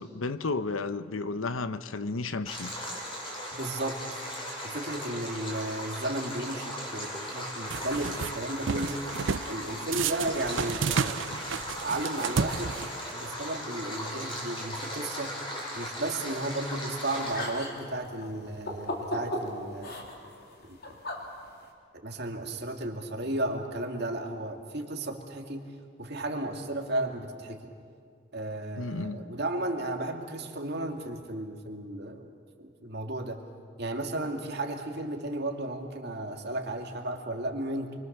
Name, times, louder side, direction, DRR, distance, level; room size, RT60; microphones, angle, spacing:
voice 1, 0.0-2.7 28.8-29.2, left 3 dB, 85° left, 12 dB, 0.9 m, -32 dB
Stream, 2.5-17.5, equal, 25° left, 5.0 m, -37 dB
voice 2, 3.5-4.2 4.6-9.1 9.5-11.3 11.8-12.7 13.1-15.4 15.8-19.9 20.7-20.8 22.0-25.6 26.0-27.7 28.3-32.3 32.6-33.4 33.8-37.9, right 1 dB, 55° right, 2 dB, 2.4 m, -34 dB
sound 1, 7.7-8.3 8.7-9.5 9.9-13.1, right 6 dB, 70° right, 0.6 m, -31 dB
sound 2, 17.1-21.7, left 1 dB, 50° left, 3.4 m, -38 dB
29.0 x 23.5 x 6.8 m, 2.3 s
head